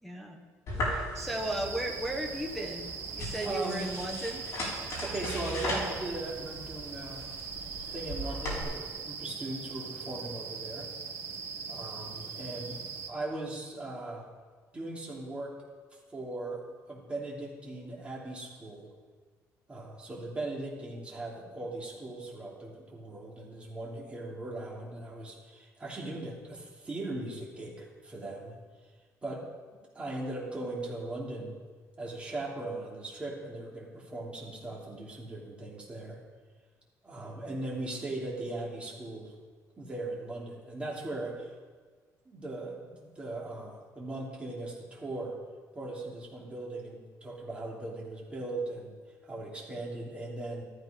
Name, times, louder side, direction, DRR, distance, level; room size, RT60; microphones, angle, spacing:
voice 1, 0.0-0.5 0.8-4.4, right 1 dB, ahead, 2 dB, 1.4 m, -36 dB
sound 1, 0.7-8.6, left 1 dB, 50° left, 5.7 m, -38 dB
sound 2, 1.1-13.1, right 5 dB, 35° right, 1.8 m, -41 dB
voice 2, 3.4-3.9 5.0-7.3 7.9-10.9 11.7-14.3 14.7-15.6 16.1-16.6 16.9-18.9 19.7-28.6 29.2-29.5 29.9-31.6 32.0-36.2 37.0-39.3 39.8-41.5 42.2-45.3 45.7-49.0 49.2-50.6, right 2 dB, 15° right, -3 dB, 3.1 m, -39 dB
13.5 x 13.5 x 5.2 m, 1.5 s
cardioid pair, 150°, 7 cm